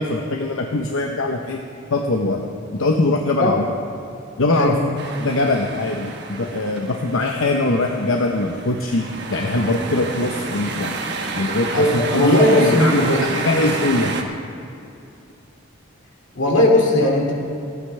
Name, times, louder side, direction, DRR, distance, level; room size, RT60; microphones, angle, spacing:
voice 1, 0.0-1.6 1.9-2.4 2.7-3.6 4.4-4.7 5.2-11.0 11.3-14.2, left 2 dB, 80° left, 2 dB, 0.9 m, -22 dB
sound 1, 5.0-14.2, right 3 dB, 55° right, 1.2 m, -29 dB
voice 2, 11.8-13.2 16.3-17.3, left 1 dB, 65° left, 0 dB, 2.4 m, -17 dB
28.0 x 9.7 x 3.3 m, 2.6 s
head